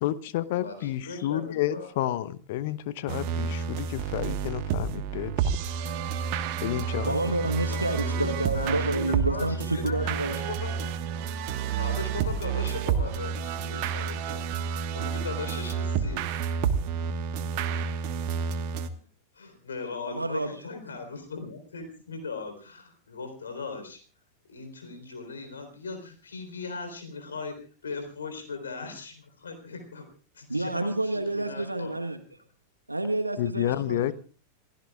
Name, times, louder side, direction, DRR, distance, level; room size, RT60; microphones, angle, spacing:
voice 1, 0.0-5.7 6.6-7.2 33.4-34.1, left 13 dB, 50° left, 16 dB, 0.8 m, -30 dB
voice 2, 0.5-1.9 7.7-10.7 11.7-14.4 14.9-16.2 18.9-19.0 19.3-24.0 24.5-27.5 27.8-30.1 30.3-32.0, left 4 dB, 70° left, 7 dB, 3.9 m, -39 dB
sound 1, 3.1-18.9, right 7 dB, 45° right, 1.4 m, -30 dB
voice 3, 7.0-10.4 20.0-20.6 30.5-32.2 32.9-34.1, right 2 dB, 85° right, 8 dB, 1.3 m, -29 dB
28.0 x 16.0 x 2.4 m, 0.37 s
figure-of-eight pair, 90°, 0 cm